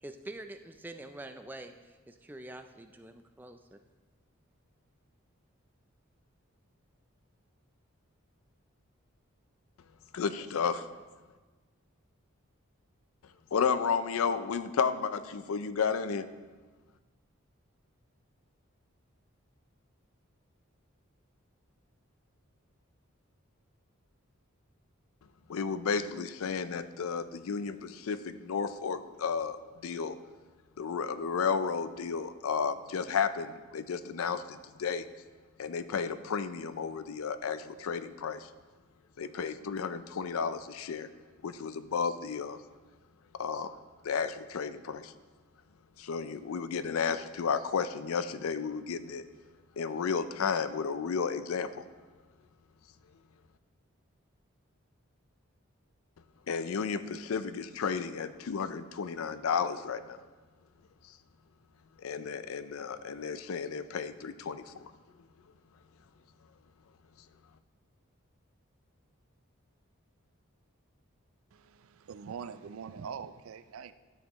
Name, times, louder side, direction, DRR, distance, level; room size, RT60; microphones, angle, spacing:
voice 1, 0.0-3.8, right 1 dB, 10° right, 0.3 m, -46 dB
voice 2, 10.1-10.9 13.5-16.3 25.5-29.6 29.8-30.2 30.8-35.1 35.6-38.5 39.2-41.1 41.4-42.6 43.4-43.8 44.0-45.1 46.0-49.2 49.8-51.8 56.5-60.2 62.0-64.9, left 6 dB, 85° left, 0.4 m, -32 dB
voice 3, 71.5-73.9, right 6 dB, 80° right, 0.4 m, -43 dB
12.5 x 6.5 x 3.0 m
head